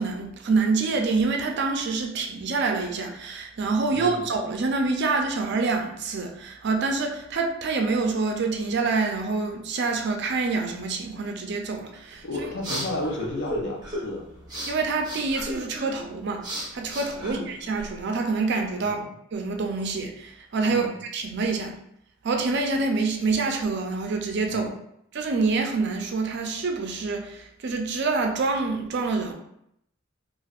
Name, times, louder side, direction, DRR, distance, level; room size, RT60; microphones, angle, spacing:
voice 1, 0.0-12.2 14.7-16.4 16.7-19.0 19.3-21.8 22.2-24.7 25.1-29.3, right 3 dB, 55° right, 3 dB, 0.4 m, -26 dB
sound 1, 12.1-18.0, equal, 20° right, 0.8 m, -36 dB
voice 2, 12.2-14.2 17.2-17.5 18.8-19.1 20.7-20.9 24.5-24.7, left 1 dB, 60° left, 0 dB, 0.6 m, -33 dB
3.3 x 2.4 x 2.4 m, 0.76 s
head